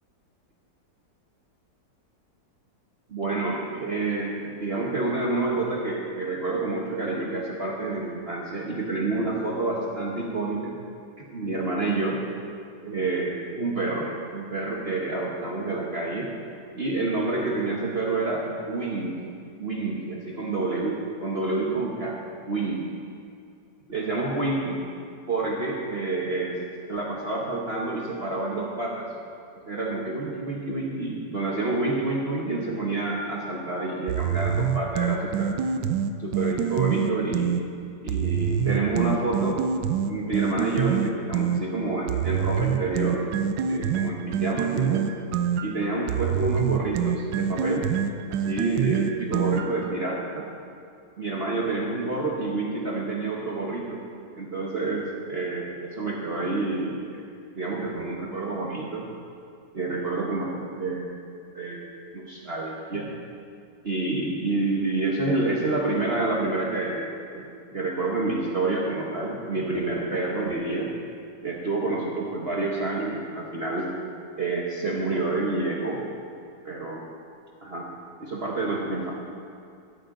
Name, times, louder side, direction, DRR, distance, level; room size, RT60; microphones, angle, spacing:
voice 1, 3.1-10.8 11.2-12.2 12.8-16.3 16.7-19.1 19.6-22.2 22.5-22.8 23.9-24.8 25.3-26.6 26.9-29.1 29.7-35.6 36.2-37.6 38.0-39.6 40.0-43.2 43.7-45.0 45.6-47.8 48.3-50.5 51.2-54.0 54.4-57.2 57.5-59.0 59.7-61.0 61.5-61.8 62.1-63.1 63.8-70.9 71.4-73.9 74.4-76.0 76.6-77.1 77.6-77.9 78.2-79.1, right 2 dB, 40° right, -3 dB, 1.3 m, -28 dB
sound 1, 34.1-37.6 38.1-41.6 42.1-49.9, right 7 dB, 85° right, 1.3 m, -26 dB
15.5 x 13.0 x 3.8 m, 2.4 s
omnidirectional pair, 1.9 m